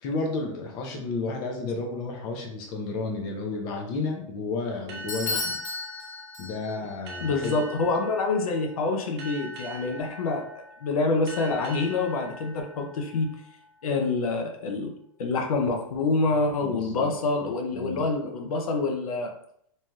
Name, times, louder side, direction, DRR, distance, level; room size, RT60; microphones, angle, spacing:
voice 1, 0.0-5.6 6.4-7.6 16.6-17.1 17.4-18.1, left 3 dB, 25° left, 2 dB, 0.5 m, -32 dB
sound 1, 4.9-14.0, right 1 dB, 50° right, 0.7 m, -43 dB
Bell / Doorbell, 5.1-6.9, left 3 dB, 60° left, 1.1 m, -33 dB
voice 2, 7.2-13.3 13.8-14.9 15.2-19.3, left 3 dB, 90° left, 3 dB, 0.5 m, -26 dB
3.1 x 2.7 x 2.2 m, 0.69 s
supercardioid pair, 160°, 18 cm